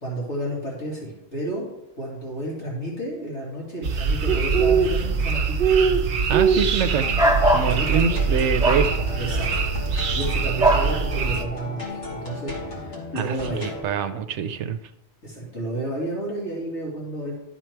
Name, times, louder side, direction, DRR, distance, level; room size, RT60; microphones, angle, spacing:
voice 1, 0.0-1.7 1.9-5.6 7.2-8.2 9.2-9.5 10.1-13.9 15.2-17.4, right 1 dB, 85° left, -4 dB, 2.5 m, -31 dB
sound 1, 3.8-11.4, right 5 dB, 55° right, 0.7 m, -22 dB
voice 2, 6.3-7.2 7.5-9.1 13.2-14.8, right 7 dB, 85° right, 10 dB, 0.9 m, -25 dB
sound 2, 6.9-13.8, left 2 dB, 60° left, 2.5 m, -35 dB
sound 3, 7.1-7.7 8.6-8.9 10.6-10.9, right 1 dB, 5° right, 0.7 m, -19 dB
12.0 x 4.3 x 4.5 m, 0.86 s
omnidirectional pair, 1.2 m